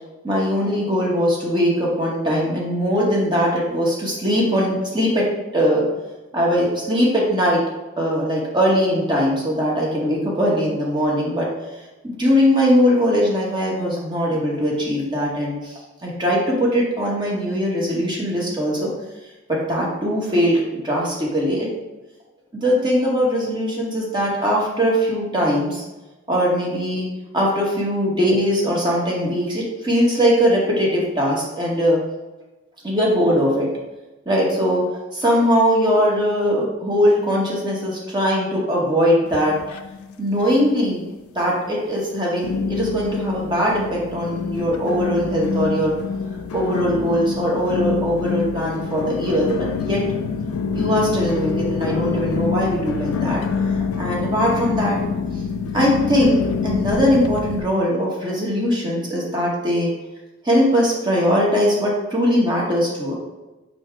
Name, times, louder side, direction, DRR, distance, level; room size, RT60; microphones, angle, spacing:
voice 1, 0.2-5.2 5.5-5.9 6.3-7.6 8.0-11.5 12.0-15.7 16.0-18.9 19.5-21.7 22.5-25.8 26.3-27.1 27.3-32.0 32.8-33.7 34.3-34.8 35.1-39.6 40.2-41.0 41.3-45.9 46.5-50.0 50.7-53.4 54.0-55.0 55.7-59.9 60.4-63.1, equal, 20° right, -4 dB, 1.0 m, -20 dB
sound 1, 39.3-40.2 40.5-41.1 41.6-41.7 42.4-57.6, left 5 dB, 80° left, 0.3 m, -26 dB
5.4 x 2.1 x 4.5 m, 1.1 s
head